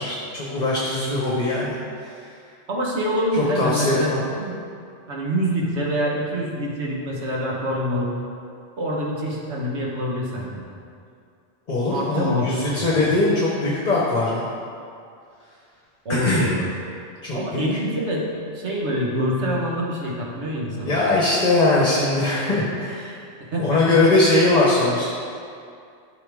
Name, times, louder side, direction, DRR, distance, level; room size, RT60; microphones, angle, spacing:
voice 1, 0.0-2.3 3.4-4.2 11.7-14.4 16.1-16.5 17.2-17.7 20.8-23.2 23.6-25.0, left 2 dB, 40° left, -4 dB, 1.1 m, -21 dB
voice 2, 2.7-4.1 4.4-4.6 5.1-8.1 8.8-10.6 11.9-12.5 12.7-13.0 16.0-16.7 17.3-18.3 18.5-21.0 23.4-24.0, equal, 75° right, -3 dB, 1.6 m, -25 dB
11.5 x 5.7 x 3.6 m, 2.4 s
omnidirectional pair, 1.2 m